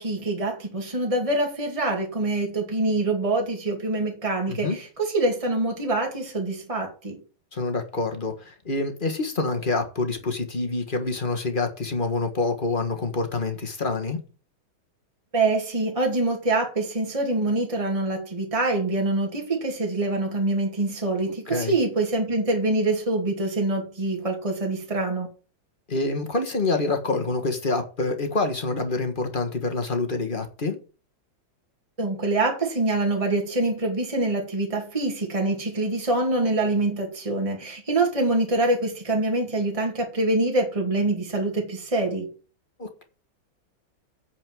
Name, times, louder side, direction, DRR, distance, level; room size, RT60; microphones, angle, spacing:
voice 1, 0.0-7.2 15.3-25.3 32.0-42.3, right 2 dB, 15° right, 2.4 m, -25 dB
voice 2, 7.5-14.2 21.5-21.7 25.9-30.8 42.8-43.0, left 3 dB, 30° left, 1.4 m, -27 dB
8.5 x 4.9 x 7.6 m
omnidirectional pair, 2.2 m